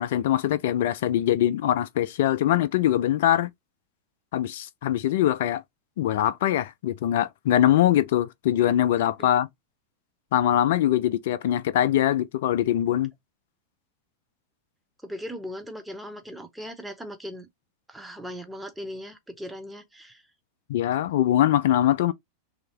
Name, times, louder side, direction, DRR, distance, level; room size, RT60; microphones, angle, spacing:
voice 1, 0.0-3.5 4.3-5.6 6.0-9.5 10.3-13.1 20.7-22.1, left 12 dB, 55° left, 0.3 m, -22 dB
voice 2, 15.0-17.5 17.9-20.2, equal, 5° right, 0.8 m, -38 dB
3.2 x 2.8 x 3.0 m
figure-of-eight pair, 90°, 0 cm